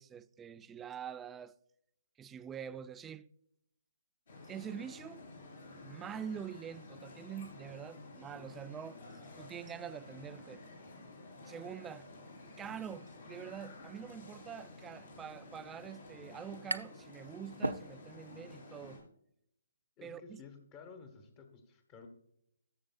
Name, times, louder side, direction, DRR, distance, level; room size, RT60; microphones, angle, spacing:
voice 1, 0.0-1.5 2.2-3.3 4.5-5.2 5.8-10.6 11.5-12.1 12.6-19.0 20.0-20.4, right 8 dB, 10° right, 0.3 m, -45 dB
sound 1, 4.3-19.0, left 2 dB, 55° left, 3.6 m, -52 dB
sound 2, 16.7-17.1 17.4-18.3, right 2 dB, 80° right, 0.5 m, -38 dB
voice 2, 20.0-22.1, left 5 dB, 25° left, 1.4 m, -53 dB
13.5 x 7.0 x 2.4 m
figure-of-eight pair, 135°, 0 cm